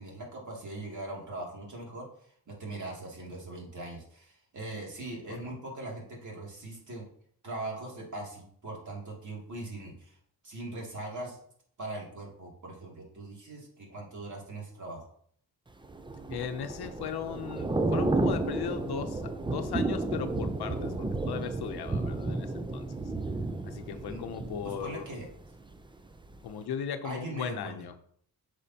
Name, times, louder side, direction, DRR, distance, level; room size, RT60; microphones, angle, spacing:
voice 1, 0.0-7.0 7.4-10.2 10.4-11.4 11.8-15.1 23.9-24.2 24.6-25.3 27.0-27.8, right 2 dB, 50° right, -2 dB, 2.7 m, -41 dB
Thunder / Rain, 15.8-25.8 26.1-26.4, right 2 dB, 15° right, 0.5 m, -32 dB
voice 2, 16.3-22.9 23.6-25.1 26.4-28.0, left 8 dB, 75° left, 9 dB, 0.8 m, -37 dB
8.3 x 5.2 x 2.9 m, 0.63 s
cardioid pair, 85°, 38 cm